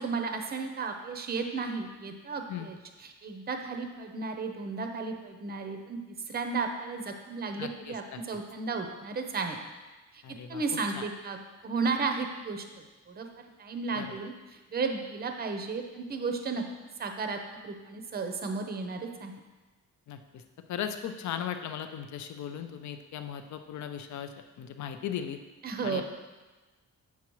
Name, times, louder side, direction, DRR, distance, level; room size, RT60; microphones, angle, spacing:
voice 1, 0.0-9.6 10.1-11.4 11.6-12.7 13.1-13.3 13.6-16.7 17.0-19.3 25.6-26.0, right 4 dB, 30° right, 5 dB, 0.6 m, -34 dB
voice 2, 7.6-8.2 10.2-10.6 10.9-11.0 13.9-14.1 20.1-20.4 20.7-25.4 25.8-26.0, left 9 dB, 65° left, 8 dB, 0.5 m, -37 dB
8.4 x 5.8 x 3.0 m, 1.2 s
wide cardioid pair, 180°, 32 cm